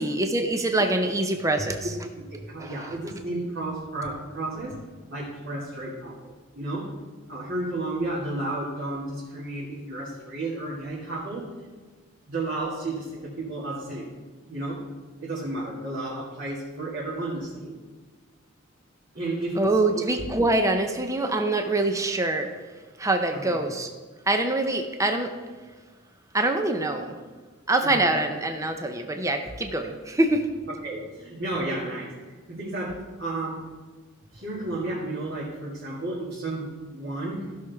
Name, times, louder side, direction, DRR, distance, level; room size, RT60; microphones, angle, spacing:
voice 1, 0.0-1.9 2.6-2.9 19.6-22.5 23.0-23.9 24.3-25.3 26.3-27.2 27.7-30.5, right 2 dB, 15° right, 5 dB, 0.7 m, -24 dB
voice 2, 2.3-4.8 5.1-6.9 7.3-11.5 12.3-14.1 14.4-14.8 15.2-17.8 19.1-20.1 23.3-23.6 27.8-28.1 30.8-33.7 34.3-37.5, right 2 dB, 55° right, -9 dB, 2.3 m, -32 dB
15.5 x 6.1 x 3.5 m, 1.4 s
head